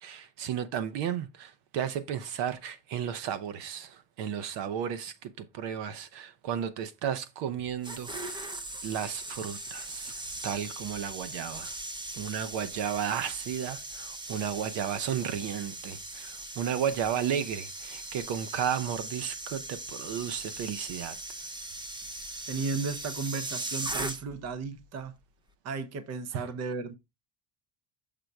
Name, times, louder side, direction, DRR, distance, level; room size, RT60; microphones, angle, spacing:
voice 1, 0.0-10.1 10.4-11.7 12.1-21.2 26.3-26.4, right 8 dB, 65° right, 0.9 m, -33 dB
sound 1, 7.6-24.5 24.8-25.1, right 2 dB, 10° right, 0.4 m, -39 dB
voice 2, 22.5-25.1 25.6-26.9, right 4 dB, 35° right, 0.8 m, -34 dB
6.9 x 3.7 x 4.6 m
cardioid pair, 145°, 47 cm